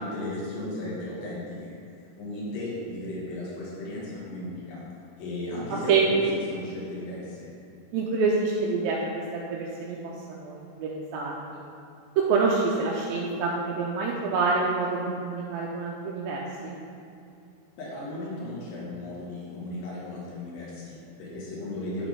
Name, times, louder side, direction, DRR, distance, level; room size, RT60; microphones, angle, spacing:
voice 1, 0.0-1.7 2.2-4.8 5.2-7.5 17.8-22.1, left 1 dB, 65° left, -7 dB, 3.4 m, -35 dB
voice 2, 7.9-9.0 9.3-10.0 10.3-11.6 12.2-16.8, right 4 dB, 80° right, -3 dB, 2.2 m, -27 dB
11.0 x 6.1 x 3.6 m, 2.5 s
omnidirectional pair, 4.7 m